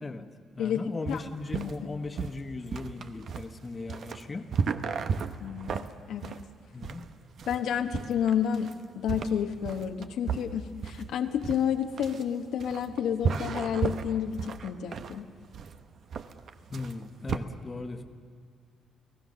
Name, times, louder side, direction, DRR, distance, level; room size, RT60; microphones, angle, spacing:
voice 1, 0.0-4.5 6.7-7.1 16.7-18.1, left 3 dB, 30° left, 6 dB, 1.4 m, -38 dB
sound 1, 1.1-17.4, right 6 dB, 60° right, 1.0 m, -34 dB
voice 2, 5.4-6.3 7.5-15.3, left 8 dB, 80° left, 5 dB, 1.1 m, -30 dB
29.0 x 17.0 x 6.7 m, 2.1 s
cardioid pair, 90°, 0 cm